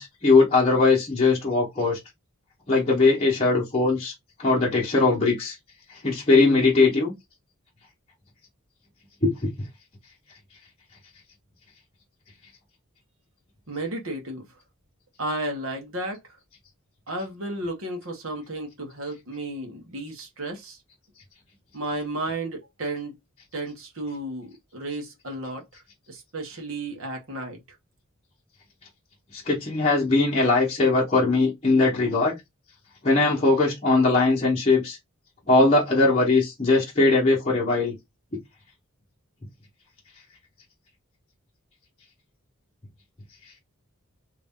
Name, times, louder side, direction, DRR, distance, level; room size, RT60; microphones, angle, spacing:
voice 1, 0.0-2.0 2.7-4.1 4.4-5.6 5.9-7.1 9.2-9.7 29.3-32.4 33.0-35.0 35.5-38.0, left 3 dB, 30° left, 1.0 m, -20 dB
voice 2, 13.7-14.4 15.2-16.4 17.1-20.8 21.7-23.2 23.5-25.6 26.1-27.6, right 2 dB, 70° right, 1.3 m, -33 dB
3.1 x 2.6 x 3.6 m
head